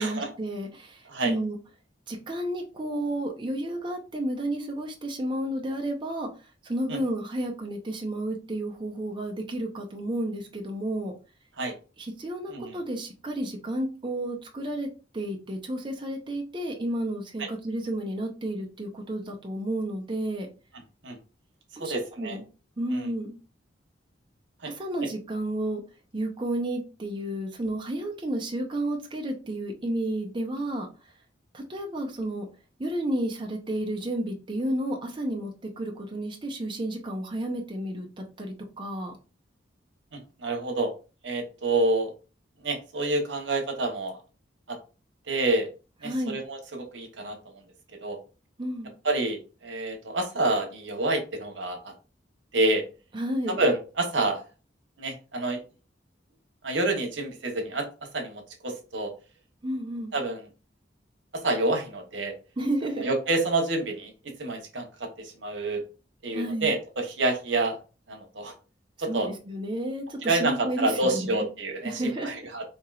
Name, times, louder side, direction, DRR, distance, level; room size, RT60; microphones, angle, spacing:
voice 1, 0.0-1.6 2.1-6.3 6.6-11.1 12.0-14.9 15.1-20.5 21.8-22.4 22.8-23.4 24.6-25.8 26.1-31.1 31.5-32.5 32.8-39.1 46.0-46.4 48.6-49.0 53.1-53.6 59.6-60.1 62.6-63.1 66.3-66.7 69.1-71.5 71.8-72.3, right 1 dB, 25° right, 0 dB, 0.6 m, -31 dB
voice 2, 21.8-22.4 22.9-23.1 24.6-24.7 40.1-40.9 41.2-42.1 42.6-44.2 44.7-44.8 45.3-45.7 46.0-47.4 48.0-48.2 49.0-51.9 52.5-52.8 53.5-54.4 55.0-55.6 56.6-57.9 58.1-59.1 60.1-60.5 61.3-62.3 63.0-64.1 64.4-65.8 66.2-67.8 68.1-68.5 69.0-69.3 70.2-72.6, right 2 dB, 80° right, 3 dB, 1.0 m, -28 dB
4.5 x 2.8 x 2.4 m, 0.33 s
head